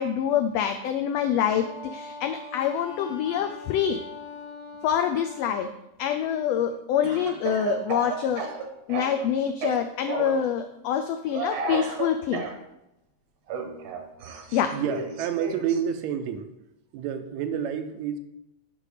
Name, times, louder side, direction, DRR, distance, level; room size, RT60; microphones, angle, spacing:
voice 1, 0.0-4.0 4.8-5.7 6.0-8.5 8.9-12.5 14.5-14.7, left 9 dB, 85° left, 6 dB, 1.4 m, -26 dB
Wind instrument woodwind instrument, 1.3-5.6, left 4 dB, 70° left, 1.9 m, -41 dB
Speech / Cough, 7.0-9.3 9.6-10.4 11.3-12.5 13.5-15.8, right 5 dB, 65° right, 1.6 m, -32 dB
voice 2, 14.7-16.5 16.9-18.2, right 8 dB, 80° right, 8 dB, 1.8 m, -29 dB
10.0 x 5.2 x 4.9 m, 0.88 s
omnidirectional pair, 3.4 m